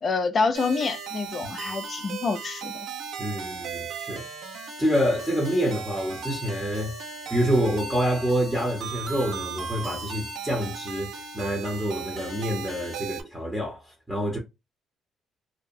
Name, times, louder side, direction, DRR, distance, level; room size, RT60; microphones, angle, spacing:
voice 1, 0.0-2.9, left 4 dB, 35° left, 0.4 m, -27 dB
sound 1, 0.5-13.2, right 5 dB, 70° right, 0.9 m, -37 dB
voice 2, 3.2-4.3 4.8-6.9 7.3-14.4, equal, 5° right, 0.7 m, -27 dB
2.7 x 2.1 x 2.5 m
cardioid pair, 150°, 0 cm